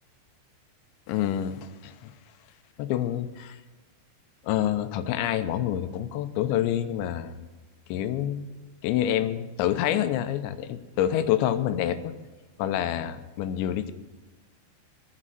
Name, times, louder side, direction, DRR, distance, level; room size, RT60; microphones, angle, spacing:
voice 1, 1.1-2.1 2.8-3.6 4.4-7.5 7.9-8.5 8.8-12.1 12.6-13.9, left 11 dB, 85° left, 11 dB, 3.0 m, -27 dB
14.0 x 7.4 x 9.1 m, 1.2 s
omnidirectional pair, 5.1 m